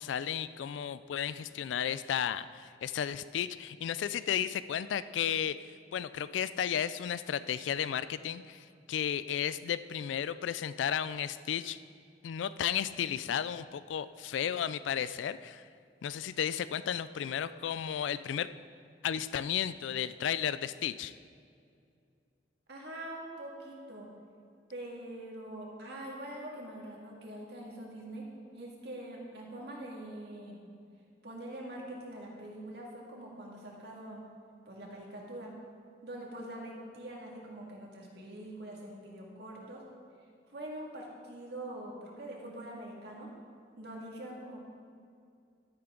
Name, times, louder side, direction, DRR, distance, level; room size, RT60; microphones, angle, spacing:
voice 1, 0.0-5.6 5.9-11.8 12.2-15.6 16.0-18.5 19.0-21.1, left 9 dB, 85° left, 15 dB, 0.3 m, -33 dB
voice 2, 22.7-24.1 24.7-28.3 28.5-30.6 31.2-34.2 34.7-35.5 36.0-39.8 40.5-43.3 43.8-44.6, right 1 dB, 60° right, -2 dB, 2.1 m, -44 dB
12.0 x 10.5 x 3.8 m, 2.4 s
head